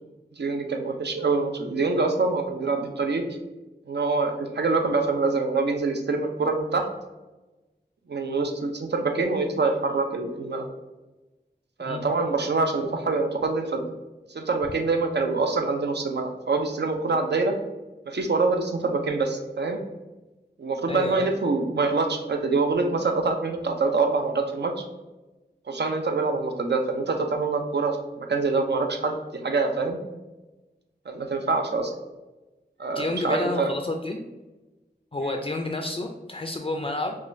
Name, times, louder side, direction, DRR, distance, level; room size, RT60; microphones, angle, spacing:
voice 1, 0.3-3.3 3.9-6.9 8.1-10.7 11.8-13.9 14.3-17.5 18.1-19.8 20.6-24.7 25.7-29.2 29.4-30.0 31.1-31.9 32.8-33.7, right 3 dB, 70° right, 4 dB, 0.5 m, -25 dB
voice 2, 11.8-12.2 20.9-21.3 32.9-34.2 35.1-37.2, left 2 dB, 30° left, 3 dB, 0.3 m, -30 dB
4.8 x 2.3 x 2.6 m, 1.1 s
wide cardioid pair, 40°, 18 cm